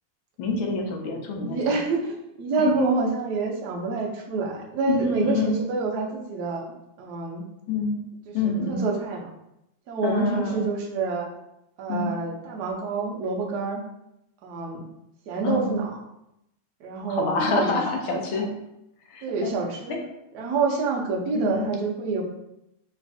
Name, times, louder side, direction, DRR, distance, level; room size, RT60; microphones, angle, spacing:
voice 1, 0.4-1.8 2.6-2.9 4.9-5.6 7.7-8.0 8.3-8.8 10.0-10.6 11.9-12.2 15.4-15.8 17.1-18.6 19.1-19.5 19.9-20.0 21.3-21.8, left 4 dB, 75° left, 2 dB, 1.4 m, -27 dB
voice 2, 1.4-6.7 7.0-7.5 8.3-9.3 9.9-11.3 11.8-13.8 14.4-14.8 15.3-15.9 16.8-17.7 18.1-18.4 19.2-20.0 20.3-22.2, right 4 dB, 80° right, 0 dB, 0.9 m, -27 dB
3.3 x 3.0 x 2.6 m, 0.83 s
omnidirectional pair, 2.4 m